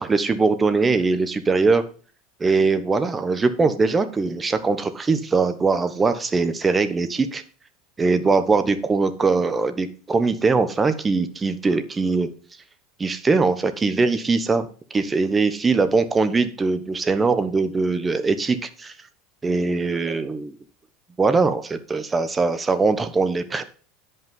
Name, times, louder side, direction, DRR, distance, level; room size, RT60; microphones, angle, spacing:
voice 1, 0.0-1.8 2.4-7.4 8.0-12.3 13.0-18.9 19.4-20.5 21.2-23.6, right 4 dB, 20° right, 11 dB, 1.1 m, -21 dB
10.0 x 5.6 x 5.5 m, 0.40 s
supercardioid pair, 110°, 0 cm